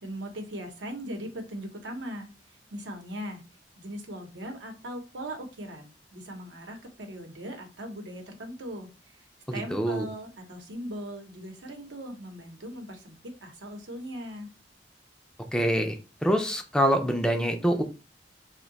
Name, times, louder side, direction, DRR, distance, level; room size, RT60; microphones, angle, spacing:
voice 1, 0.0-3.4 3.8-14.5, equal, 85° right, 3 dB, 0.8 m, -39 dB
voice 2, 9.5-10.1 15.5-16.0 16.2-17.8, equal, 5° left, 4 dB, 0.4 m, -25 dB
2.6 x 2.2 x 3.8 m, 0.30 s
head